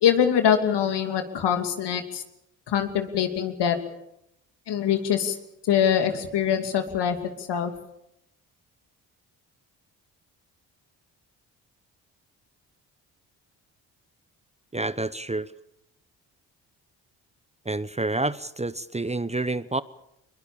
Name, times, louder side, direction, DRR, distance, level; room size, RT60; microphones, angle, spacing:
voice 1, 0.0-2.2 2.7-3.8 4.7-5.4 5.6-7.2 7.5-7.7, left 8 dB, 70° left, 7 dB, 2.8 m, -23 dB
voice 2, 14.7-15.5 17.6-19.8, right 2 dB, 15° right, 16 dB, 0.9 m, -28 dB
22.5 x 22.0 x 7.1 m, 0.80 s
hypercardioid pair, 50°, 43 cm